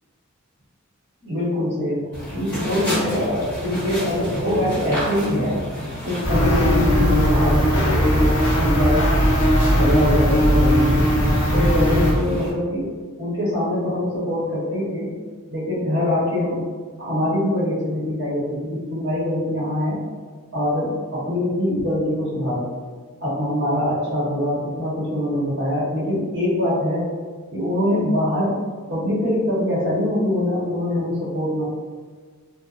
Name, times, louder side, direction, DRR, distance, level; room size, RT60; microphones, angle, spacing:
voice 1, 1.2-5.6 6.0-11.0 11.5-12.9 13.2-15.1 15.5-16.6 17.0-20.0 20.5-22.7 23.2-27.1 27.5-28.6 28.9-31.7, left 1 dB, 60° right, -7 dB, 1.0 m, -23 dB
sound 1, 2.1-12.5, equal, 10° left, 1.1 m, -31 dB
sound 2, 6.2-12.1, equal, 65° left, 0.6 m, -18 dB
2.7 x 2.1 x 2.4 m, 1.5 s
head